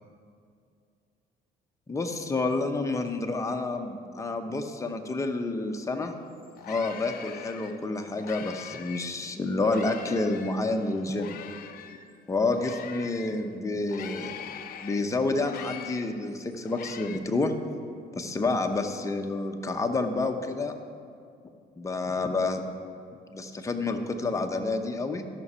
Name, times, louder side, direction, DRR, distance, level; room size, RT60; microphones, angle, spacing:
voice 1, 1.9-6.1 6.7-11.4 12.3-14.3 14.8-17.5 18.1-20.7 21.8-22.6 23.3-25.2, left 3 dB, 20° left, 4 dB, 0.8 m, -29 dB
sound 1, 6.0-6.1 6.4-9.2 9.6-13.4 13.9-17.2, left 9 dB, 60° left, 0.6 m, -43 dB
13.0 x 6.0 x 5.6 m, 2.4 s
cardioid pair, 110°, 17 cm